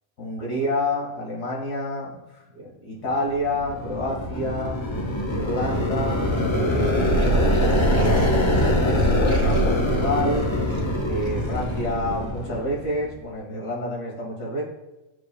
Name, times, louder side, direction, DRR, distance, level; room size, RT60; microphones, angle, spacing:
voice 1, 0.2-4.8 5.3-10.5 11.0-14.6, left 1 dB, 90° left, -3 dB, 2.4 m, -29 dB
sound 1, 3.3-13.1, left 1 dB, 25° left, 0.7 m, -24 dB
sound 2, 7.0-12.3, right 2 dB, 40° right, 0.9 m, -26 dB
12.0 x 4.9 x 2.3 m, 1.0 s
omnidirectional pair, 1.6 m